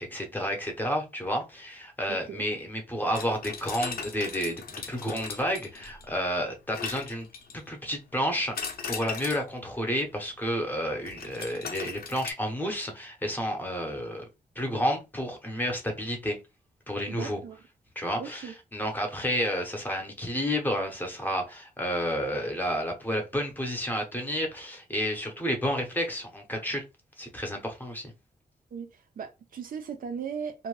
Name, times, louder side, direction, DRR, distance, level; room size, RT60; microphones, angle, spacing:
voice 1, 0.0-7.3 7.5-14.2 14.6-16.4 16.9-17.4 18.0-26.8 27.2-28.1, equal, 10° left, 0.7 m, -31 dB
voice 2, 2.1-2.4 17.1-17.6 18.2-18.5 28.7-30.7, right 6 dB, 65° right, 0.5 m, -37 dB
sound 1, 3.1-6.1 6.7-7.7 8.5-9.5 11.0-12.3, left 6 dB, 75° left, 0.5 m, -38 dB
2.5 x 2.2 x 3.1 m
wide cardioid pair, 165°, 16 cm